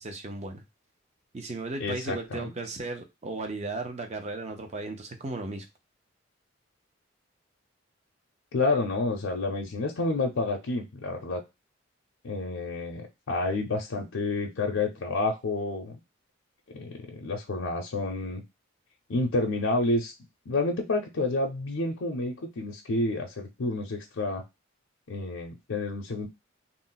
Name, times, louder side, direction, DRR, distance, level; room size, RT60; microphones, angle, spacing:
voice 1, 0.0-0.6 1.3-5.7, right 2 dB, 35° right, 5 dB, 0.5 m, -35 dB
voice 2, 1.8-2.5 8.5-11.4 12.2-16.0 16.7-18.4 19.1-20.1 20.5-24.4 25.1-26.3, left 2 dB, 75° left, 1 dB, 0.5 m, -29 dB
2.5 x 2.0 x 3.7 m, 0.23 s
head